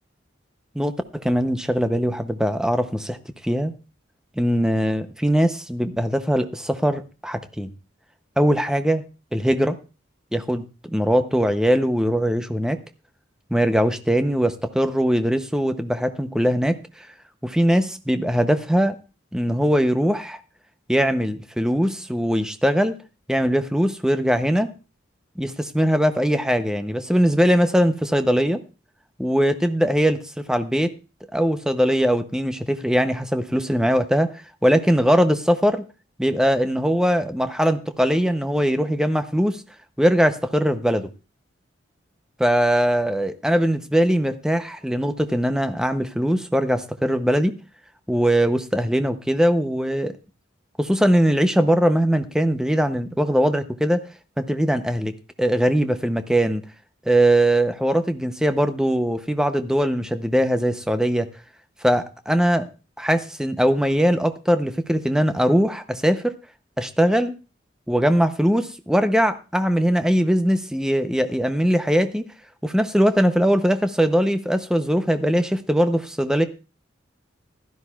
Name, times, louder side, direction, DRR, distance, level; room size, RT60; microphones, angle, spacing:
voice 1, 0.7-3.2 3.4-3.7 4.4-7.7 8.4-9.0 9.3-9.8 10.3-10.7 10.9-12.8 13.5-16.8 17.4-19.0 19.3-20.4 20.9-23.0 23.3-24.7 25.4-28.6 29.2-30.2 30.5-30.9 31.3-34.3 34.6-35.8 36.2-39.6 40.0-41.1 42.4-47.6 48.1-50.1 50.8-54.0 54.4-55.1 55.4-56.6 57.1-61.3 61.8-62.7 63.0-66.3 66.8-67.3 67.9-72.3 72.6-76.4, equal, 5° right, 9 dB, 0.6 m, -21 dB
15.5 x 12.0 x 2.3 m, 0.31 s
head